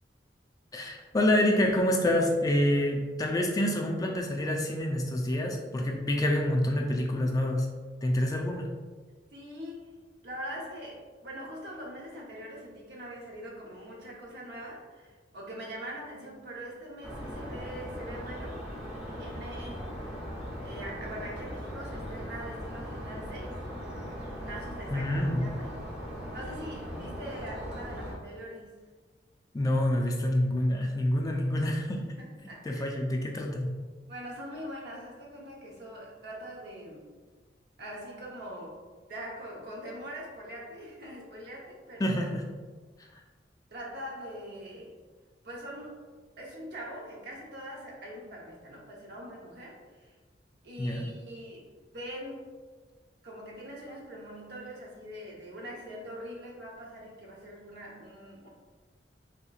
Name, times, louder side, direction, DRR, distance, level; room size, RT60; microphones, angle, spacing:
voice 1, 0.7-7.7 8.0-8.7 24.9-25.4 29.5-32.0 32.6-33.7 42.0-42.4 50.8-51.1, left 1 dB, 20° left, 1 dB, 0.3 m, -27 dB
voice 2, 9.3-9.9 10.2-18.6 19.1-20.2 20.6-23.6 24.4-25.7 26.3-28.7 32.2-32.9 34.1-37.1 37.8-38.8 39.1-42.2 43.7-44.9 45.4-46.0 46.4-50.1 50.6-52.5 53.2-58.5, equal, 65° right, -2 dB, 0.8 m, -43 dB
sound 1, 17.0-28.2, equal, 5° right, 0.8 m, -39 dB
3.4 x 2.9 x 2.4 m, 1.4 s
head